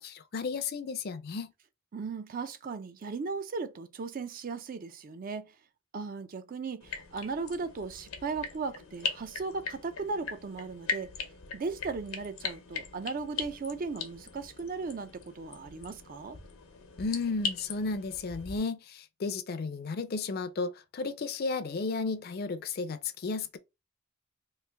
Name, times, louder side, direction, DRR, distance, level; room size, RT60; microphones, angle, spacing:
voice 1, 0.0-1.5 17.0-23.6, left 4 dB, 45° left, 0.4 m, -33 dB
voice 2, 1.9-5.5 5.9-11.1 11.5-16.4, right 4 dB, 40° right, 0.4 m, -37 dB
sound 1, 6.8-18.6, left 5 dB, 85° left, 0.7 m, -40 dB
3.1 x 2.5 x 3.3 m
head